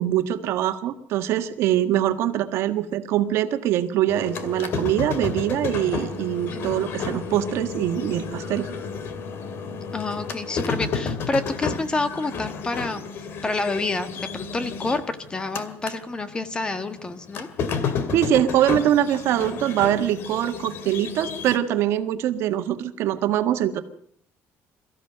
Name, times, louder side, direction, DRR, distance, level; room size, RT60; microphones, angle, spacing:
voice 1, 0.0-8.7 18.1-23.8, right 11 dB, 70° right, 8 dB, 1.6 m, -23 dB
sound 1, 4.1-16.0 16.3-21.6, left 5 dB, 55° left, 2.2 m, -32 dB
voice 2, 9.9-13.0 13.4-17.5, left 3 dB, 20° left, 11 dB, 1.4 m, -28 dB
23.0 x 14.5 x 7.8 m, 0.66 s
cardioid pair, 150°, 5 cm